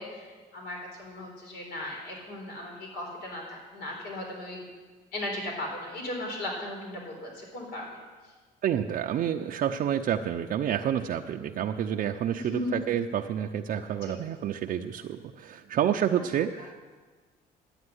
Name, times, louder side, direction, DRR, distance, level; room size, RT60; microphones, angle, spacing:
voice 1, 0.0-4.6 5.1-8.0 12.3-12.8 14.0-14.1, left 1 dB, 75° left, 0 dB, 4.2 m, -37 dB
voice 2, 8.6-16.8, right 9 dB, 55° right, 3 dB, 0.6 m, -29 dB
11.0 x 8.8 x 9.7 m, 1.4 s
cardioid pair, 110°, 17 cm